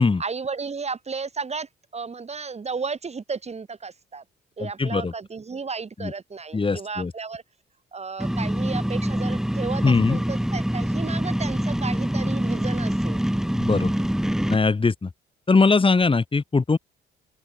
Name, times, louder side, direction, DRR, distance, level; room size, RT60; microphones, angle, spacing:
voice 1, 0.2-4.2 4.6-7.4 7.9-13.2, right 5 dB, 35° right, 3.0 m, -33 dB
voice 2, 4.6-5.1 6.0-6.1 6.5-7.1 9.8-10.2 13.5-13.9 14.5-15.1 15.5-16.8, left 4 dB, 25° left, 3.8 m, -21 dB
sound 1, 8.2-14.6, equal, ahead, 3.5 m, -25 dB
open air
cardioid pair, 90°, 20 cm